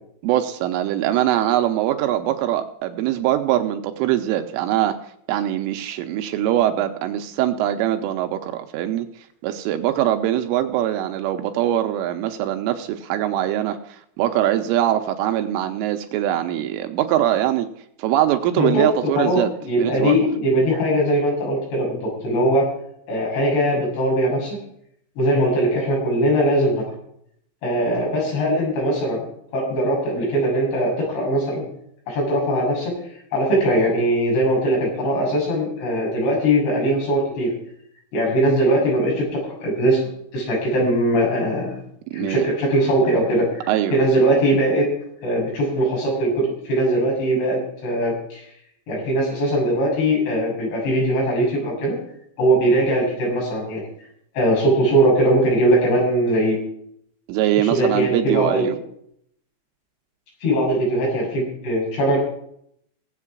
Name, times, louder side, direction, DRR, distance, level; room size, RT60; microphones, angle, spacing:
voice 1, 0.2-5.0 5.3-9.1 9.4-17.7 18.0-19.5 19.8-20.2 42.1-42.5 43.7-44.0 57.3-58.8, right 12 dB, 80° right, 7 dB, 3.2 m, -22 dB
voice 2, 18.6-18.9 19.2-22.7 23.1-24.6 25.2-26.8 27.6-29.2 29.5-31.7 32.1-32.9 33.3-37.5 38.1-40.0 40.3-41.8 42.1-44.9 45.2-48.4 48.9-52.0 52.4-53.8 54.4-56.6 57.6-58.7 60.4-62.2, right 1 dB, 55° left, -2 dB, 9.1 m, -20 dB
19.0 x 8.2 x 6.1 m, 0.70 s
omnidirectional pair, 5.9 m